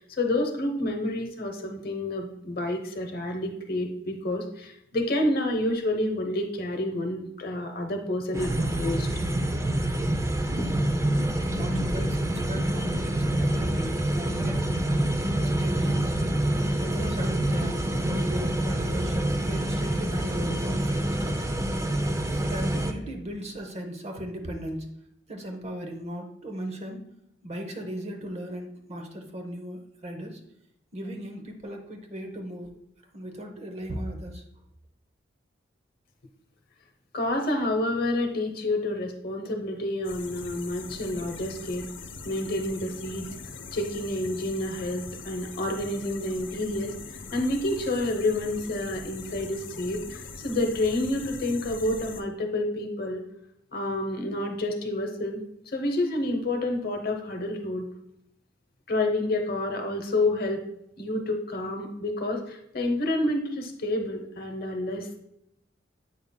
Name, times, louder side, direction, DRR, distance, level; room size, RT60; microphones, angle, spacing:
voice 1, 0.0-9.1 10.6-10.7 37.1-41.9 42.2-43.3 43.7-47.0 47.3-53.2 53.7-57.9 58.9-60.6 61.0-65.2, left 1 dB, 55° left, 4 dB, 0.9 m, -29 dB
sound 1, 8.3-22.9, right 1 dB, 15° right, 0.4 m, -26 dB
voice 2, 11.3-16.1 16.8-21.4 22.3-24.9 25.3-27.2 27.4-30.4 30.9-32.7 33.1-34.4, equal, 35° right, 4 dB, 0.8 m, -37 dB
sound 2, 40.0-52.2, left 4 dB, 85° left, 0.6 m, -42 dB
8.1 x 5.4 x 2.2 m, 0.79 s
head